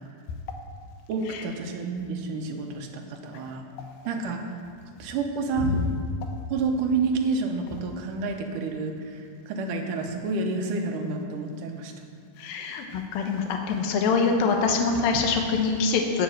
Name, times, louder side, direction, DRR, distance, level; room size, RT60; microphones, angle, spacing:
voice 1, 1.1-3.7 4.0-4.4 5.0-5.9 6.5-11.9, right 4 dB, 70° right, 3 dB, 2.2 m, -29 dB
voice 2, 12.4-16.2, left 4 dB, 80° left, 3 dB, 2.7 m, -24 dB
10.5 x 7.3 x 7.7 m, 2.3 s
omnidirectional pair, 4.2 m